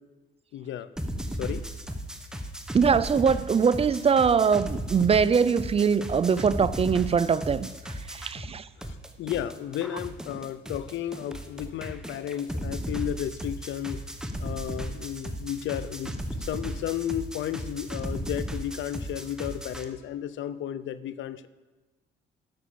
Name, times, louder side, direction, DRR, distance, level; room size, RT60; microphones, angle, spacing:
voice 1, 0.5-1.7 8.8-14.1 14.4-21.5, left 11 dB, 75° left, 0.6 m, -33 dB
sound 1, 1.0-8.5 8.8-19.8, equal, 5° right, 1.0 m, -36 dB
voice 2, 2.7-7.7 8.1-8.7, right 6 dB, 30° right, 0.4 m, -22 dB
11.5 x 6.2 x 7.0 m
cardioid pair, 90°, 20 cm